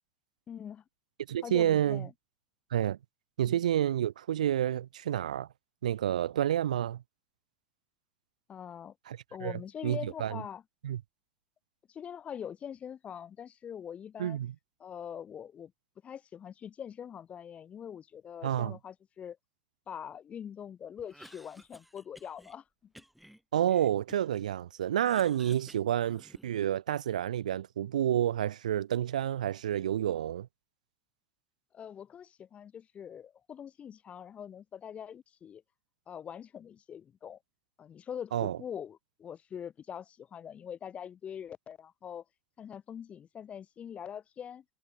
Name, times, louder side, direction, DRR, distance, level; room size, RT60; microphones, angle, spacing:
voice 1, 0.5-0.8 1.4-2.1 3.4-3.6 8.5-8.9 9.3-10.6 11.9-14.4 14.8-15.7 16.0-19.4 19.9-22.6 23.0-23.1 31.7-35.6 36.1-37.4 37.8-42.2 42.6-44.6, left 8 dB, 30° left, 3.3 m, -43 dB
voice 2, 1.3-2.1 2.7-3.0 3.4-5.5 5.8-7.0 9.1-10.4 10.8-11.0 14.2-14.5 18.4-18.8 23.5-30.5 38.3-38.6, right 11 dB, 75° right, 0.5 m, -29 dB
Cough, 21.0-22.6 23.0-24.4 24.8-26.7, equal, ahead, 4.2 m, -55 dB
hypercardioid pair, 80°, 4 cm